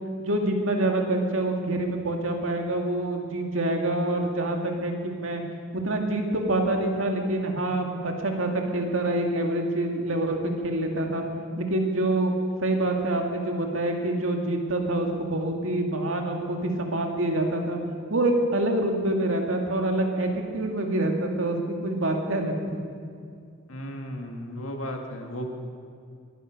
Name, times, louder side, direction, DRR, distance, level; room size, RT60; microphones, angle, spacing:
voice 1, 0.2-5.4 5.7-11.2 11.6-12.3 12.6-17.8 18.1-22.8, right 1 dB, 75° right, 2 dB, 2.1 m, -26 dB
voice 2, 23.7-25.5, equal, 80° left, 3 dB, 2.0 m, -35 dB
22.5 x 9.9 x 6.4 m, 2.3 s
head